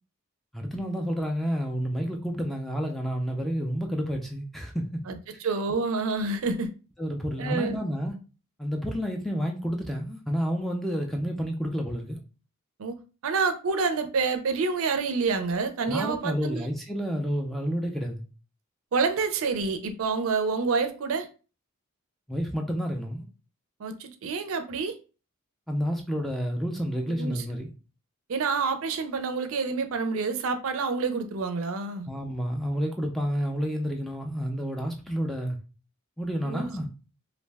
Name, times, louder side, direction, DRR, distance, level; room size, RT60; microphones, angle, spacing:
voice 1, 0.5-5.0 7.0-8.2 8.6-12.2 15.9-18.2 22.3-23.3 25.7-27.7 32.1-35.6 36.2-36.9, equal, ahead, 0.3 m, -30 dB
voice 2, 5.4-6.7 7.4-7.8 12.8-13.0 13.2-16.7 18.9-21.3 23.8-24.9 27.2-27.4 28.3-32.1 36.4-36.7, right 4 dB, 65° right, 0.4 m, -28 dB
2.5 x 2.1 x 3.3 m
head